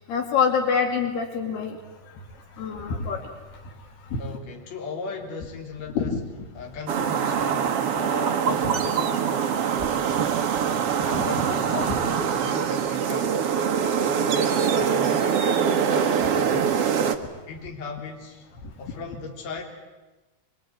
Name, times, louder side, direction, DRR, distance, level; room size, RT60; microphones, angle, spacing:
voice 1, 0.1-1.8 2.6-3.2 4.1-4.2 6.0-6.2 11.1-11.3, left 6 dB, 70° left, 3 dB, 4.5 m, -25 dB
voice 2, 4.2-6.2 6.5-9.4 11.0-13.4 14.0-17.1 17.5-18.5 18.8-19.6, left 4 dB, 40° left, 1 dB, 4.2 m, -37 dB
sound 1, 6.9-17.2, right 7 dB, 70° right, 1.4 m, -23 dB
25.0 x 22.5 x 9.6 m, 1.2 s
omnidirectional pair, 4.9 m